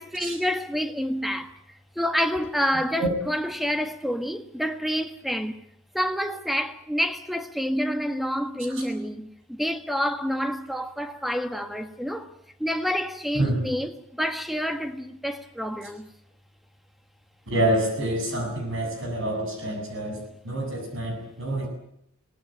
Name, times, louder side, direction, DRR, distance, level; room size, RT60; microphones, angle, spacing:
voice 1, 0.0-1.5 1.9-5.6 5.9-12.3 12.6-16.1, equal, ahead, 1.6 m, -28 dB
voice 2, 17.5-21.7, right 1 dB, 60° right, 7.7 m, -27 dB
24.5 x 19.5 x 9.2 m
head